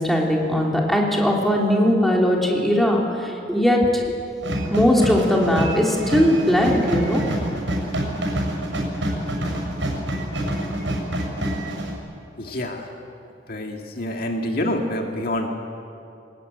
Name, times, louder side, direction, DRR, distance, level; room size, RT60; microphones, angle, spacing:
voice 1, 0.0-3.8 4.1-4.2 4.7-7.2, equal, ahead, -2 dB, 3.2 m, -19 dB
sound 1, 4.4-11.9, right 1 dB, 90° right, 6.8 m, -26 dB
voice 2, 12.4-12.9 13.5-15.5, left 1 dB, 55° left, 2 dB, 2.0 m, -27 dB
23.0 x 20.0 x 9.3 m, 2.6 s
head